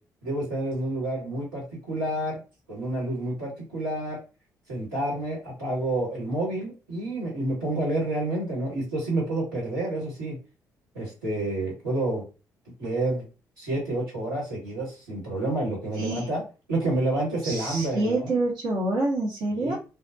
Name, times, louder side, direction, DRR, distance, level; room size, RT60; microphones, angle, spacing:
voice 1, 0.2-2.4 2.7-4.2 4.7-10.4 10.9-12.2 12.8-13.2 13.6-16.4 16.7-18.3 19.5-19.8, right 1 dB, 90° right, -5 dB, 1.4 m, -29 dB
voice 2, 16.0-16.3 17.4-19.8, right 2 dB, 55° right, -3 dB, 0.7 m, -27 dB
2.3 x 2.1 x 2.6 m, 0.32 s
figure-of-eight pair, 40°, 9 cm